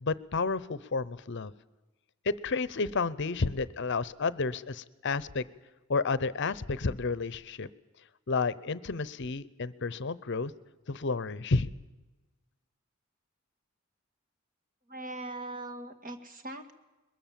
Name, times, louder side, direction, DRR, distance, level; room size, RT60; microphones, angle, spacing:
voice 1, 0.0-1.5 2.2-5.4 5.9-7.7 8.3-10.5 10.9-11.7, left 4 dB, 55° left, 18 dB, 0.7 m, -31 dB
voice 2, 14.9-16.7, right 1 dB, 40° right, 7 dB, 2.0 m, -40 dB
22.0 x 21.0 x 7.5 m, 1.1 s
head